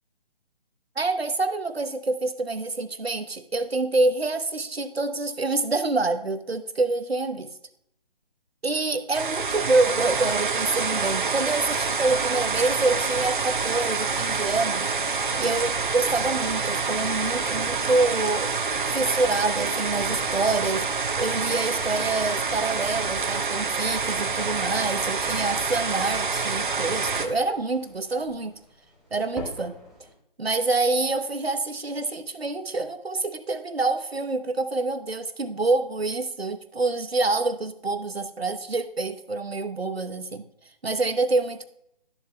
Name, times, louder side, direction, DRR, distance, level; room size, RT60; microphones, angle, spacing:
voice 1, 1.0-7.5 8.6-14.9 15.4-18.5 18.9-20.9 21.2-28.5 29.1-29.8 30.4-40.5 40.8-41.7, right 3 dB, 90° right, 11 dB, 0.9 m, -26 dB
sound 1, 9.1-27.3, right 4 dB, 55° right, 1.0 m, -27 dB
sound 2, 22.8-30.1, left 1 dB, ahead, 1.0 m, -47 dB
12.5 x 7.1 x 2.3 m, 0.76 s
figure-of-eight pair, 145°, 30 cm